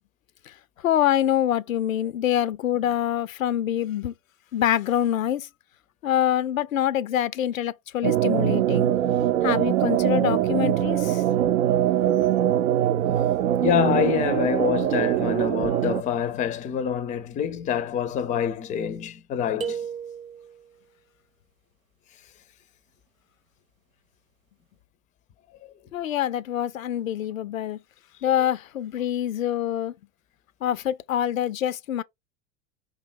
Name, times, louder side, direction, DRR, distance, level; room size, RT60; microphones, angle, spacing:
voice 1, 0.8-4.1 4.5-5.5 6.0-8.9 9.4-11.2 25.9-27.8 28.2-29.9 30.6-32.0, left 11 dB, 80° left, 0.5 m, -25 dB
sound 1, 8.0-16.0, right 11 dB, 70° right, 0.5 m, -22 dB
voice 2, 13.6-19.8, left 8 dB, 20° left, 0.5 m, -26 dB
sound 2, 19.6-20.7, right 7 dB, 90° right, 0.9 m, -33 dB
4.9 x 2.3 x 4.4 m
figure-of-eight pair, 85°, 40 cm